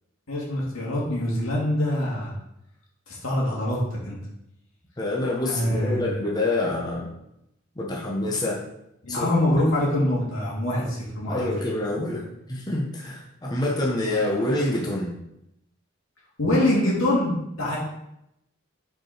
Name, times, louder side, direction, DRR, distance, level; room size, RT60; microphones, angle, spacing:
voice 1, 0.3-2.3 3.1-4.2 5.4-6.0 9.0-11.5 16.4-17.3 17.6-17.8, left 1 dB, 85° left, -4 dB, 2.3 m, -24 dB
voice 2, 5.0-7.2 7.8-8.6 9.1-9.3 11.2-15.1, left 2 dB, 20° left, -2 dB, 0.9 m, -27 dB
5.2 x 4.8 x 4.4 m, 0.83 s
head